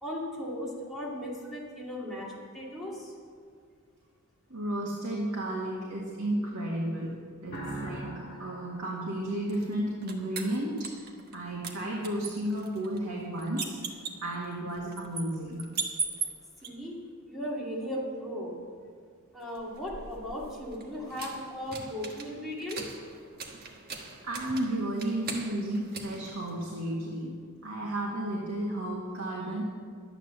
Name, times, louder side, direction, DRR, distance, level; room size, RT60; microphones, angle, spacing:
voice 1, 0.0-3.1 16.6-17.0 17.3-18.6 19.3-22.9, equal, ahead, -6 dB, 2.4 m, -37 dB
voice 2, 4.5-15.7 24.2-27.4 27.6-29.6, right 1 dB, 75° right, -3 dB, 1.9 m, -33 dB
sound 1, 7.5-10.1, right 1 dB, 50° left, 1.9 m, -42 dB
sound 2, 9.5-11.4 11.6-16.7 19.5-27.0, right 5 dB, 45° right, 1.3 m, -40 dB
11.5 x 9.1 x 7.1 m, 2.1 s
head